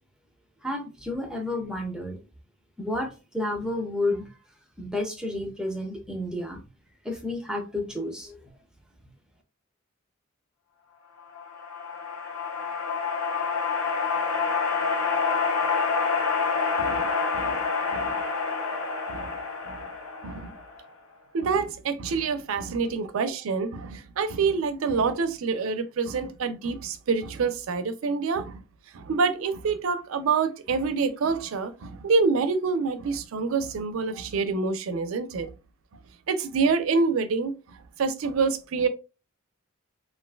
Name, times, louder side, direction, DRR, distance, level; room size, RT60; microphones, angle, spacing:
voice 1, 0.6-2.2 2.8-4.3 4.8-6.6 7.0-8.4, left 1 dB, 5° right, 0.4 m, -31 dB
sound 1, 11.3-20.9, left 5 dB, 85° left, 0.7 m, -27 dB
voice 2, 16.8-17.6 17.9-18.2 19.1-19.4 19.7-19.9 20.2-20.6 21.3-28.6 28.9-35.5 36.3-38.9, right 4 dB, 80° right, 0.4 m, -27 dB
3.1 x 2.4 x 2.2 m
head